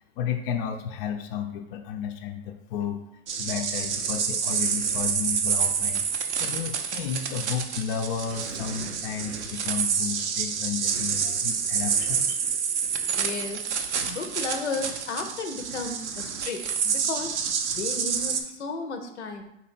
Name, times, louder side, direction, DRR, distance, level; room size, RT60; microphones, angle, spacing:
voice 1, 0.2-3.0 3.4-6.1 6.4-12.4, left 8 dB, 55° left, 5 dB, 0.5 m, -32 dB
sound 1, 3.3-18.4, right 6 dB, 85° right, 0.6 m, -28 dB
voice 2, 13.1-13.7 14.1-17.3 17.7-19.4, left 4 dB, 90° left, 6 dB, 0.7 m, -34 dB
4.1 x 2.9 x 4.2 m, 0.83 s
hypercardioid pair, 105°, 33 cm